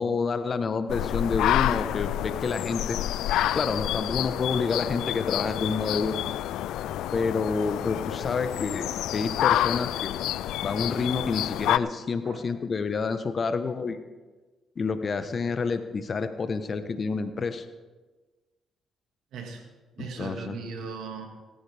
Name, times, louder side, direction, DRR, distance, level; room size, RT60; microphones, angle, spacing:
voice 1, 0.0-3.0 3.5-6.2 7.1-10.2 10.6-14.0 14.8-17.6 20.0-20.6, left 4 dB, 45° left, 9 dB, 1.3 m, -28 dB
sound 1, 0.9-11.8, left 12 dB, 80° left, 0.3 m, -28 dB
voice 2, 19.3-19.6 20.0-21.3, right 5 dB, 75° right, 3 dB, 2.2 m, -38 dB
17.5 x 14.0 x 3.6 m, 1.3 s
supercardioid pair, 65°, 0 cm